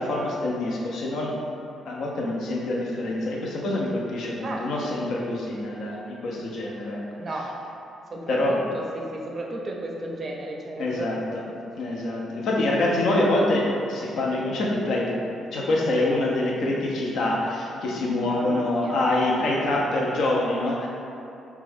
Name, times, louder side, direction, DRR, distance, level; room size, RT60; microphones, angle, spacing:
voice 1, 0.0-1.4 1.8-7.0 8.3-8.6 10.8-11.4 11.8-15.2 15.5-20.9, left 2 dB, 65° left, -3 dB, 0.5 m, -25 dB
voice 2, 7.2-7.5 8.1-11.2 18.2-19.0, right 1 dB, 45° right, -1 dB, 0.5 m, -34 dB
2.6 x 2.2 x 3.3 m, 2.7 s
hypercardioid pair, 45°, 0 cm